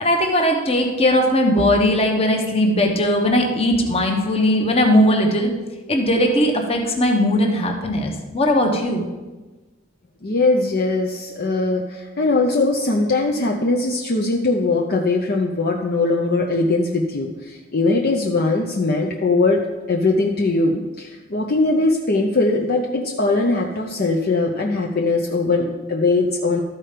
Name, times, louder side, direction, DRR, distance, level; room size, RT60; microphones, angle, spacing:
voice 1, 0.0-5.5 5.9-9.1, left 1 dB, 30° left, 2 dB, 1.1 m, -18 dB
voice 2, 10.2-19.6 19.9-26.6, left 3 dB, 45° left, 1 dB, 0.6 m, -20 dB
13.0 x 4.4 x 5.1 m, 1.2 s
head